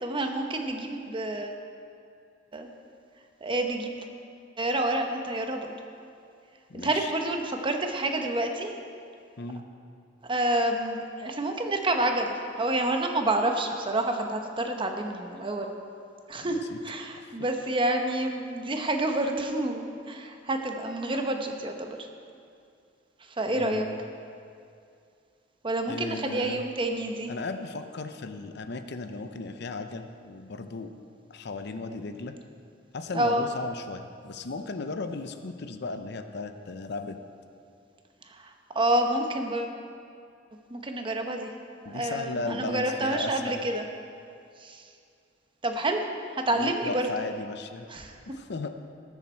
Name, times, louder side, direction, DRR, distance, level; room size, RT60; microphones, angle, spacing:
voice 1, 0.0-1.6 2.5-2.7 3.4-4.0 4.6-5.7 6.7-8.7 10.3-15.7 16.3-22.0 23.4-23.8 25.6-27.3 33.1-33.5 38.3-39.8 40.7-41.5 41.8-43.8 44.6-44.8 45.6-46.0 46.3-47.1 47.9-48.2, right 1 dB, 25° right, 4 dB, 0.9 m, -28 dB
voice 2, 6.7-7.1 9.4-9.6 16.4-16.8 17.2-17.5 23.5-24.0 25.9-26.6 27.3-30.9 31.3-32.4 32.9-37.2 41.8-43.6 46.5-47.9 48.3-48.7, left 3 dB, 60° left, 8 dB, 0.6 m, -36 dB
19.0 x 7.2 x 4.4 m, 2.4 s
head